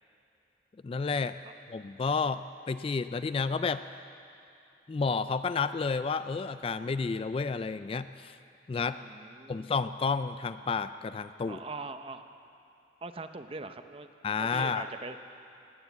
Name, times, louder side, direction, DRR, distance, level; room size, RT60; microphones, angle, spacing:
voice 1, 0.8-1.4 1.7-3.8 4.9-8.4 8.7-9.0 9.5-11.6 14.2-14.8, left 4 dB, 30° left, 12 dB, 0.3 m, -31 dB
voice 2, 8.9-9.7 11.5-12.3 13.0-14.1 14.4-15.2, right 3 dB, 30° right, 9 dB, 0.6 m, -42 dB
18.0 x 9.5 x 8.2 m, 2.7 s
head